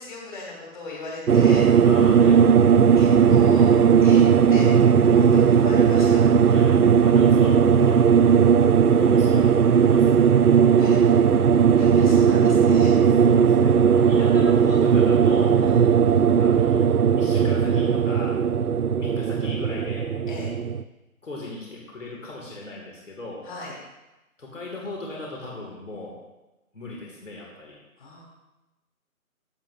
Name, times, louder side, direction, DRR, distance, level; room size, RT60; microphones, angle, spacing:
voice 1, 0.0-1.9 2.9-4.2 4.5-4.7 5.0-6.2 10.8-11.2 11.8-13.0 15.6-15.8 20.3-20.5 23.4-23.7 28.0-28.2, left 2 dB, 35° left, -4 dB, 3.0 m, -38 dB
sound 1, 1.3-20.8, right 7 dB, 80° right, 0.6 m, -17 dB
voice 2, 1.8-2.4 6.4-8.3 8.8-10.1 10.6-10.7 13.2-15.6 16.4-16.8 17.2-18.3 19.0-20.1 21.2-23.4 24.4-26.2 26.7-27.8, left 2 dB, 55° left, -3 dB, 2.3 m, -38 dB
14.0 x 8.0 x 2.6 m, 1.0 s
figure-of-eight pair, 150°, 44 cm